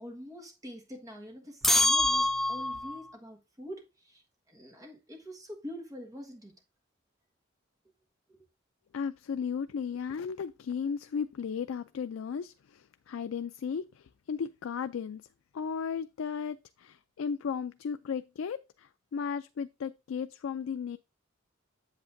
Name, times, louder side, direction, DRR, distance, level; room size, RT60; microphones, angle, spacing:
voice 1, 0.0-6.6 8.3-8.4, equal, 20° right, 1.5 m, -45 dB
sound 1, 1.6-3.0, left 2 dB, ahead, 0.4 m, -25 dB
voice 2, 8.9-15.3 15.5-21.0, left 6 dB, 85° left, 0.4 m, -35 dB
8.0 x 7.6 x 2.6 m
head